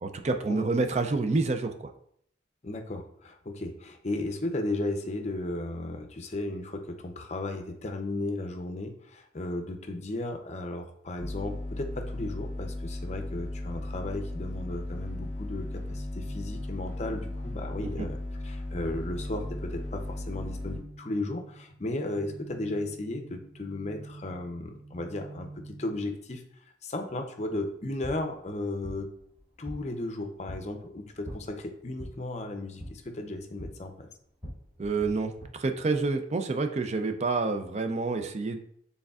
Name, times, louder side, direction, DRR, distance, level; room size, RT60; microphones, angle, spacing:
voice 1, 0.0-1.9 17.8-18.1 34.8-38.6, right 3 dB, 35° right, 7 dB, 0.4 m, -28 dB
voice 2, 2.6-18.2 18.4-26.4 26.8-29.1 29.6-34.1, left 2 dB, 35° left, 4 dB, 0.6 m, -35 dB
sound 1, 11.2-20.8, left 1 dB, 10° left, 1.5 m, -36 dB
sound 2, 14.7-26.2, right 2 dB, 85° right, 0.6 m, -49 dB
sound 3, 27.7-35.5, equal, 15° right, 2.0 m, -45 dB
6.3 x 3.5 x 2.4 m, 0.66 s
head